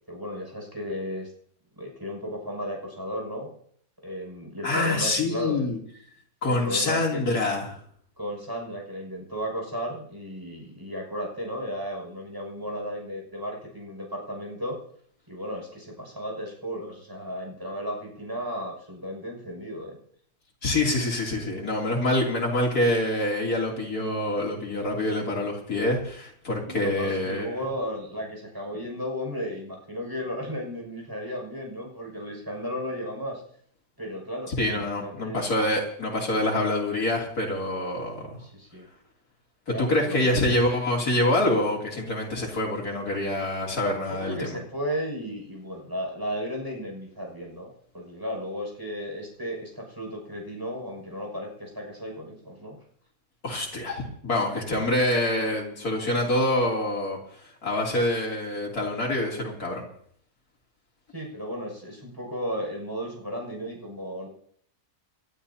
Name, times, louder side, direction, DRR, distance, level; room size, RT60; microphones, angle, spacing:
voice 1, 0.1-1.3 1.8-3.5 4.0-5.7 6.5-7.2 8.2-14.8 15.3-20.0 26.7-33.4 34.0-35.4 38.4-38.9 39.7-40.4 44.1-52.8 61.1-64.3, equal, 15° right, -1 dB, 6.4 m, -34 dB
voice 2, 4.6-5.8 6.4-7.8 20.6-27.6 34.6-38.4 39.7-44.6 53.4-59.8, left 1 dB, 80° left, -2 dB, 3.7 m, -26 dB
30.0 x 12.5 x 2.9 m, 0.63 s
omnidirectional pair, 1.6 m